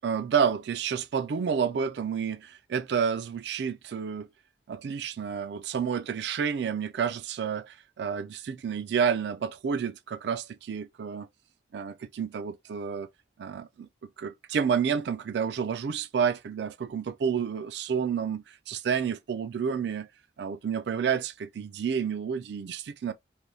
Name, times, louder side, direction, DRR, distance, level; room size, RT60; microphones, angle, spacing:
voice 1, 0.0-4.3 4.7-11.3 11.7-13.1 13.4-13.9 14.2-20.1 20.4-23.1, right 7 dB, 70° right, 0.3 m, -30 dB
3.4 x 2.6 x 2.6 m
head